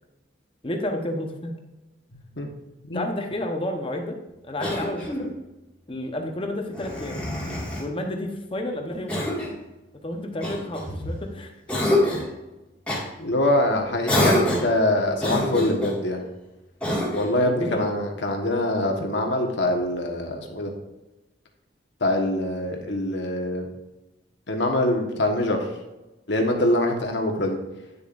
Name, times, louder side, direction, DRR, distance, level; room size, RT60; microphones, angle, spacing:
voice 1, 0.6-1.5 2.9-4.2 4.4-5.3 5.9-7.2 7.8-9.3 10.0-11.9 17.4-17.8, left 1 dB, 30° left, 3 dB, 1.0 m, -31 dB
voice 2, 2.1-2.5 2.9-3.1 13.2-16.2 17.1-20.7 22.0-23.7 24.5-25.6 26.3-27.6, left 1 dB, 65° left, 3 dB, 1.4 m, -24 dB
Cough, 4.6-5.4 6.7-7.9 9.1-9.6 10.4-11.2 11.7-12.3 12.8-13.1 14.1-14.8 15.2-16.0 16.8-17.4, left 1 dB, 5° left, 2.0 m, -26 dB
9.7 x 6.9 x 2.6 m, 1.0 s
head